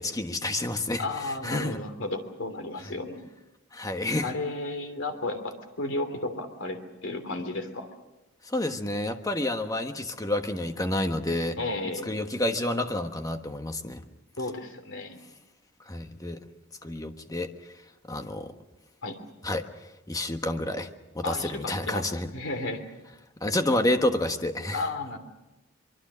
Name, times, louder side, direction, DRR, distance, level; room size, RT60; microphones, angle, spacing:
voice 1, 0.0-1.0 1.4-1.8 3.7-4.3 8.5-11.6 12.1-14.0 15.9-16.4 16.8-17.5 18.1-18.5 19.4-19.6 20.1-20.9 21.1-22.3 23.4-24.8, left 1 dB, 20° left, 7 dB, 1.3 m, -29 dB
voice 2, 1.0-3.2 4.2-7.9 11.6-12.1 14.4-15.2 19.0-19.2 21.2-22.8 24.7-25.2, left 2 dB, 65° left, 7 dB, 3.1 m, -33 dB
24.0 x 23.5 x 6.3 m, 1.0 s
head